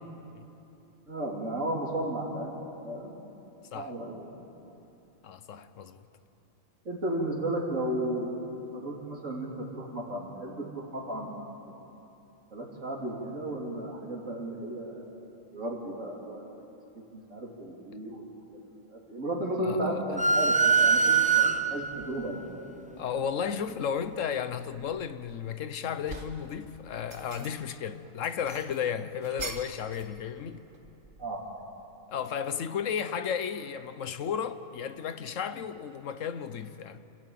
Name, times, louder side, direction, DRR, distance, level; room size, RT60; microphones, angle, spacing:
voice 1, 1.1-3.3 3.7-4.4 6.9-11.4 11.6-11.7 12.5-15.1 15.5-16.6 17.1-18.6 18.9-22.5 31.2-31.4, right 1 dB, 85° right, 3.8 m, -34 dB
voice 2, 5.2-6.0 19.6-20.1 21.7-21.8 23.0-30.6 32.1-37.0, left 7 dB, 85° left, 1.2 m, -34 dB
sound 1, 20.2-22.0, right 5 dB, 10° right, 0.4 m, -22 dB
sound 2, 23.7-23.9 24.5-25.5 25.8-26.5 26.9-27.8 28.2-30.1 30.4-31.4, right 3 dB, 45° right, 1.8 m, -43 dB
29.0 x 14.5 x 9.1 m
omnidirectional pair, 1.3 m